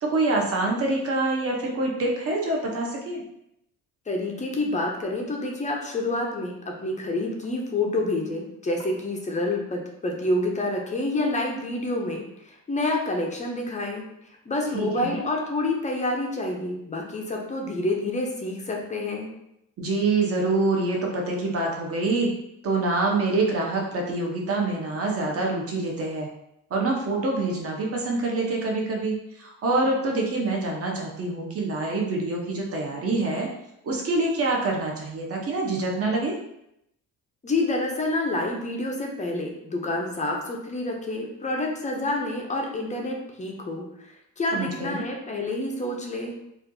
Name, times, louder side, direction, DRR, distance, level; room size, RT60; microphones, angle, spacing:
voice 1, 0.0-3.2 14.7-15.2 19.8-22.3 22.6-26.3 26.7-33.5 33.8-36.3 44.5-45.0, right 2 dB, 40° right, 0 dB, 0.7 m, -26 dB
voice 2, 4.1-14.0 14.5-19.3 37.4-43.9 44.4-46.3, left 2 dB, 20° left, 1 dB, 0.4 m, -28 dB
4.2 x 2.3 x 2.6 m, 0.81 s
wide cardioid pair, 175°, 35 cm